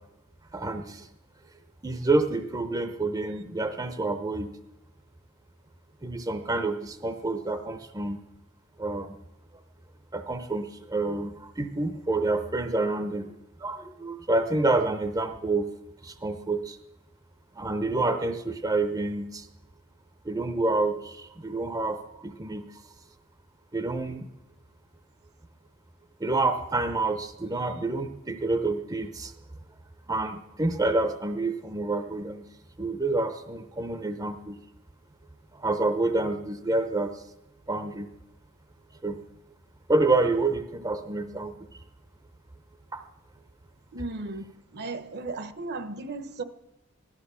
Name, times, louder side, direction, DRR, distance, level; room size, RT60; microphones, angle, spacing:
voice 1, 0.5-1.1 1.8-4.5 6.0-8.2 8.8-9.2 10.1-13.3 13.6-15.7 16.0-16.8 17.6-19.5 20.2-22.7 23.7-24.3 26.2-29.3 30.1-32.5 32.8-34.6 35.5-37.2 37.7-38.1 39.0-39.2 39.9-41.5 42.9-43.0, right 2 dB, 20° right, 0.7 m, -28 dB
voice 2, 43.9-44.4 44.7-46.4, right 3 dB, 50° right, 1.0 m, -35 dB
16.0 x 12.0 x 6.9 m
head